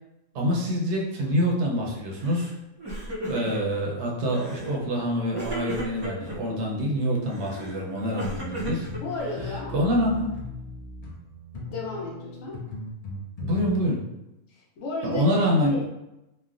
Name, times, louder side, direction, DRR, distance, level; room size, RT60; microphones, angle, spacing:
voice 1, 0.3-2.5 3.2-8.9 9.7-10.3 13.4-14.0 15.0-15.8, equal, 65° right, -2 dB, 0.9 m, -26 dB
Crying sobbing, 2.2-2.5 2.8-3.8 4.3-4.8 5.3-6.4 7.3-9.5, right 1 dB, 30° right, 0.5 m, -35 dB
sound 1, 8.4-13.7, left 3 dB, 50° left, 0.5 m, -38 dB
voice 2, 9.0-9.8 11.6-12.6 14.5-15.8, left 2 dB, 85° left, -2 dB, 1.0 m, -33 dB
3.2 x 2.2 x 2.4 m, 0.94 s
omnidirectional pair, 1.3 m